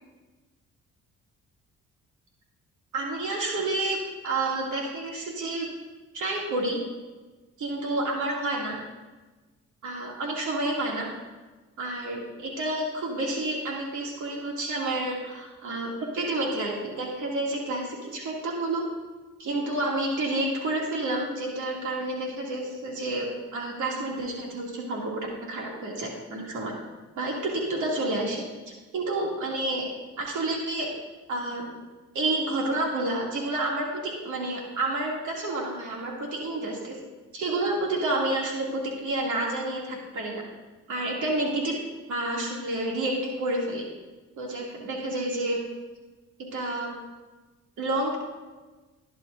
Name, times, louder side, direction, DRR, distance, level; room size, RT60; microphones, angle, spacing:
voice 1, 2.9-4.0 4.2-5.7 6.1-6.8 7.6-8.8 9.8-11.1 11.8-18.8 19.4-23.3 23.5-26.7 27.1-28.4 28.9-29.9 30.2-30.9 31.3-31.7 32.1-37.0 37.3-40.4 40.9-41.8 42.1-43.8 44.4-45.6 46.5-46.9 47.8-48.2, right 2 dB, 75° right, -2 dB, 2.7 m, -29 dB
15.5 x 10.5 x 2.7 m, 1.2 s
cardioid pair, 90°, 30 cm